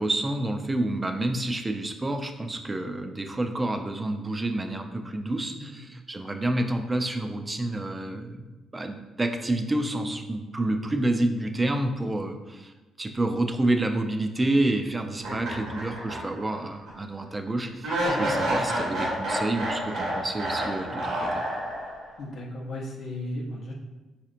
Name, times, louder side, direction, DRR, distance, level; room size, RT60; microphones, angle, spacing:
voice 1, 0.0-8.4 8.7-12.7 13.0-21.4, right 1 dB, 20° right, 5 dB, 0.4 m, -28 dB
voice 2, 5.6-5.9 22.2-23.7, left 1 dB, 60° left, -1 dB, 0.6 m, -35 dB
sound 1, 15.2-16.5 16.9-17.0 17.8-22.1, right 1 dB, 85° right, 1.2 m, -29 dB
4.1 x 2.8 x 2.5 m, 1.1 s
cardioid pair, 90°, 0 cm